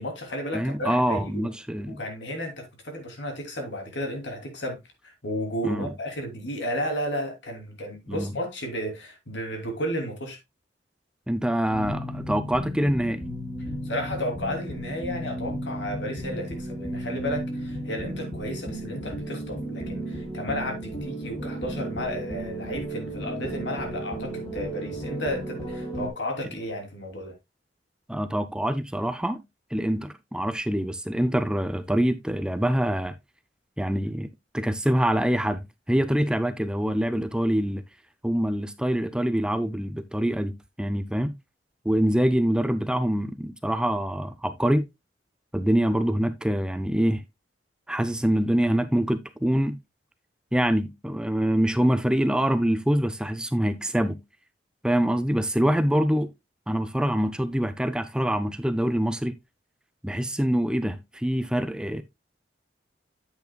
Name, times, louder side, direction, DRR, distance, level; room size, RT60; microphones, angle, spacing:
voice 1, 0.0-1.5 2.0-4.8 5.0-10.4 13.8-27.3, equal, 80° left, 3.1 m, -33 dB
voice 2, 0.5-2.0 5.6-5.9 8.1-8.3 11.3-13.2 28.1-29.4 29.7-33.1 33.8-34.3 34.5-37.8 38.2-41.3 41.9-44.9 45.5-47.2 47.9-49.7 50.5-54.2 54.8-56.3 56.7-59.3 60.0-62.0, equal, 5° right, 0.4 m, -25 dB
sound 1, 11.7-26.1, right 1 dB, 25° left, 3.6 m, -34 dB
9.3 x 8.1 x 2.2 m
head